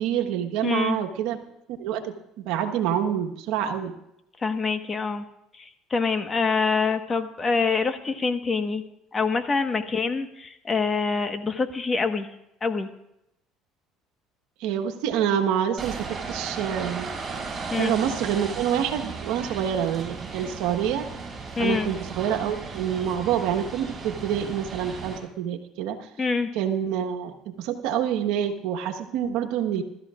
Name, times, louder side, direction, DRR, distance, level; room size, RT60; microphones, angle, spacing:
voice 1, 0.0-1.4 1.8-2.1 2.4-3.9 14.6-17.1 17.7-21.1 21.6-26.1 26.5-29.8, right 9 dB, 75° right, 4 dB, 1.3 m, -27 dB
voice 2, 0.6-1.0 4.4-5.3 5.5-8.8 9.1-12.3 12.6-12.9 17.7-17.9 21.6-21.9 26.2-26.5, left 4 dB, 30° left, 8 dB, 1.3 m, -25 dB
sound 1, 15.8-25.2, right 4 dB, 35° right, 5.5 m, -35 dB
22.0 x 13.0 x 2.5 m, 0.82 s
supercardioid pair, 80°, 0 cm